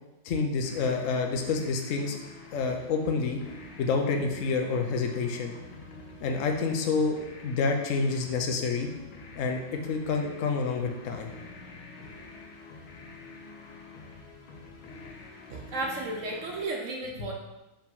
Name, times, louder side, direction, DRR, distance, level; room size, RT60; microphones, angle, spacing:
voice 1, 0.2-2.2 2.5-3.4 3.8-5.5 6.2-7.2 7.4-8.9 9.3-9.6 9.9-11.3, left 4 dB, 60° left, 3 dB, 0.8 m, -28 dB
sound 1, 0.6-16.7, left 3 dB, 80° left, 1.7 m, -47 dB
voice 2, 15.5-17.3, right 2 dB, 65° right, 0 dB, 0.7 m, -33 dB
4.8 x 4.5 x 5.5 m, 0.99 s
omnidirectional pair, 2.2 m